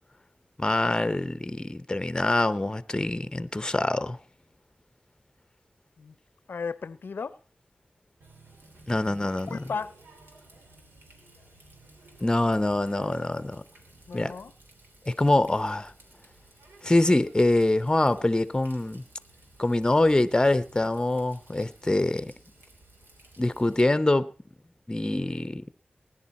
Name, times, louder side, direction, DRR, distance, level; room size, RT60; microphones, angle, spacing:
voice 1, 0.6-4.2 8.9-9.6 12.2-13.6 14.1-14.3 15.1-15.9 16.8-19.0 19.6-22.3 23.4-24.3 24.9-25.6, left 2 dB, 20° left, 0.7 m, -24 dB
voice 2, 6.5-7.4 9.1-9.2 9.5-9.9 14.1-14.5, left 5 dB, 85° left, 0.5 m, -35 dB
Water tap faucet, 8.2-23.8, right 2 dB, 90° right, 3.0 m, -54 dB
19.0 x 10.5 x 4.2 m
wide cardioid pair, 70°, 3 cm